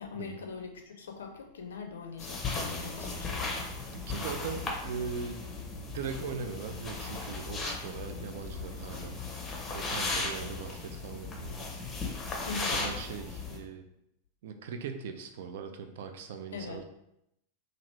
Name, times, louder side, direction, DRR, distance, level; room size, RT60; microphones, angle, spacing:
voice 1, 0.0-3.5 12.4-12.8 16.5-16.8, left 5 dB, 65° left, 4 dB, 0.5 m, -41 dB
sound 1, 2.2-13.6, left 3 dB, 20° left, 0.6 m, -36 dB
voice 2, 3.9-5.4 5.9-9.2 9.7-11.6 12.5-13.8 14.4-16.8, right 6 dB, 55° right, 6 dB, 0.3 m, -40 dB
2.8 x 2.5 x 3.2 m, 0.81 s
figure-of-eight pair, 90°, 0 cm